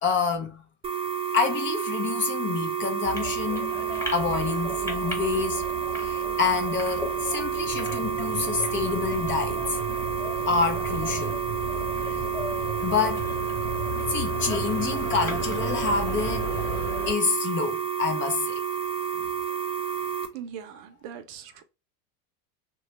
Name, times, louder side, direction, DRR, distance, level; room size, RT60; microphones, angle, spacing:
voice 1, 0.0-0.6 1.3-3.7 4.1-5.6 6.0-9.8 10.5-11.4 12.8-13.3 14.1-16.5 17.1-18.6, left 5 dB, 25° left, 0.5 m, -27 dB
sound 1, 0.8-20.3, right 8 dB, 15° right, 0.6 m, -30 dB
sound 2, 3.0-17.1, left 1 dB, 5° left, 1.2 m, -36 dB
sound 3, 7.6-16.9, right 1 dB, 75° left, 1.0 m, -37 dB
voice 2, 20.3-21.6, right 8 dB, 50° right, 0.7 m, -40 dB
3.1 x 2.3 x 2.9 m
supercardioid pair, 110°, 45 cm